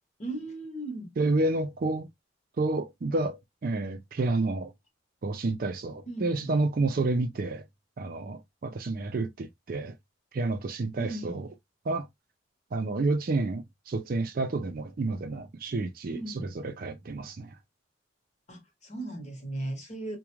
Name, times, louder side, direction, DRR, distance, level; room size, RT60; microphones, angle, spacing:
voice 1, 0.2-1.1 6.1-6.5 11.0-11.5 16.1-16.5 18.5-20.2, right 1 dB, 35° left, 0.9 m, -37 dB
voice 2, 1.2-2.1 2.6-4.7 5.2-7.7 8.0-9.9 10.3-11.5 11.9-12.1 12.7-17.6, right 2 dB, 50° right, 0.4 m, -30 dB
2.4 x 2.2 x 2.9 m
head